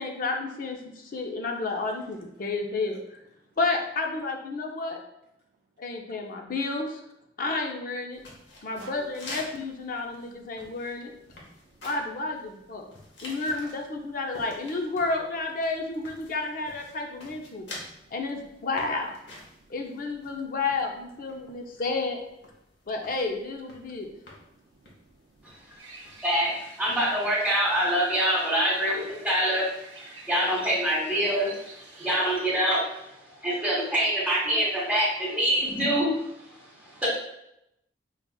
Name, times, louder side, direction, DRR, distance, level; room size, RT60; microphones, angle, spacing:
voice 1, 0.0-3.2 3.6-5.0 5.8-7.0 7.4-8.2 8.6-11.1 11.8-12.9 13.2-17.7 18.1-19.1 19.7-22.2 22.9-24.1, left 3 dB, 50° left, 3 dB, 0.5 m, -31 dB
sound 1, 8.1-26.4, left 1 dB, 85° left, 0.9 m, -48 dB
voice 2, 11.3-11.9 12.8-13.1 17.5-18.1 19.5-19.7 21.4-21.8 23.9-26.2 30.1-30.3 32.0-32.1 33.3-33.4 36.7-37.0, right 4 dB, 55° right, 0 dB, 0.3 m, -59 dB
voice 3, 25.4-37.1, equal, 5° right, -8 dB, 1.1 m, -26 dB
sound 2, 25.8-32.4, right 3 dB, 90° right, 0.9 m, -48 dB
5.6 x 2.4 x 2.3 m, 0.82 s
head